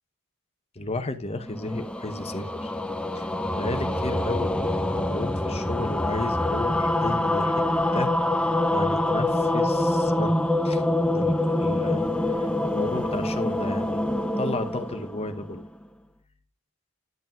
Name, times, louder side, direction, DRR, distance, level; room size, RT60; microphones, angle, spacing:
voice 1, 0.7-2.7 3.1-3.3 3.5-7.6 7.9-10.8 11.1-14.1 14.4-15.6, left 2 dB, 30° left, 0.9 m, -33 dB
sound 1, 1.4-15.8, left 1 dB, 5° left, 0.6 m, -25 dB
10.5 x 8.2 x 2.4 m
head